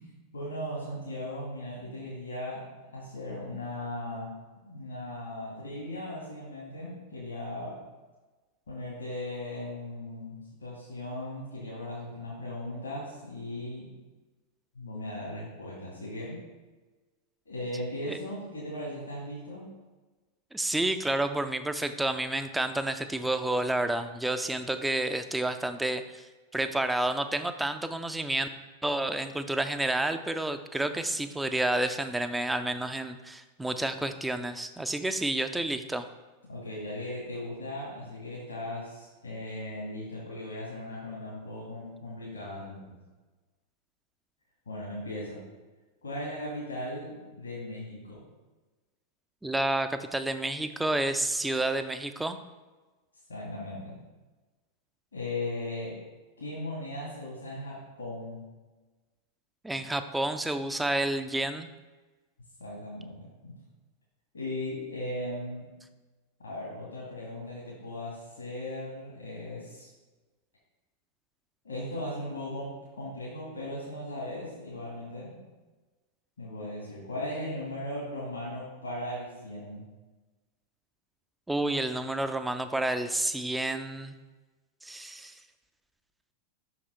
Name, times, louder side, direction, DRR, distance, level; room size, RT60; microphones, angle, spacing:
voice 1, 0.0-7.8 8.7-13.9 14.7-16.4 17.5-19.7 36.5-43.0 44.7-45.4 46.0-48.2 53.3-54.0 55.1-56.0 56.4-58.4 62.6-63.5 64.3-65.7 66.4-69.9 71.6-75.5 76.4-79.8, left 1 dB, 75° left, -6 dB, 2.3 m, -38 dB
voice 2, 20.5-28.5 28.8-36.1 49.4-52.4 59.6-61.7 81.5-84.2 84.8-85.4, right 1 dB, 5° right, 9 dB, 0.5 m, -30 dB
6.2 x 5.8 x 4.5 m, 1.2 s
figure-of-eight pair, 90°, 0 cm